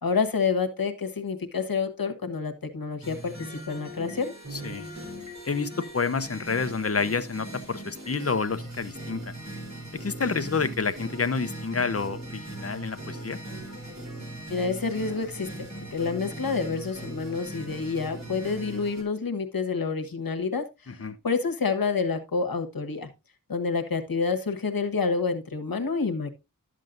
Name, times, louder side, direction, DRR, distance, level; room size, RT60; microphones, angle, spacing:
voice 1, 0.0-4.3 14.5-15.5 15.9-23.1 23.5-26.3, left 4 dB, 85° left, 1.3 m, -28 dB
sound 1, 3.0-19.0, right 1 dB, 50° right, 3.6 m, -40 dB
voice 2, 4.5-4.9 5.4-9.3 10.0-13.4 20.9-21.1, left 4 dB, 45° left, 0.8 m, -29 dB
12.0 x 7.5 x 2.5 m
wide cardioid pair, 70°, 34 cm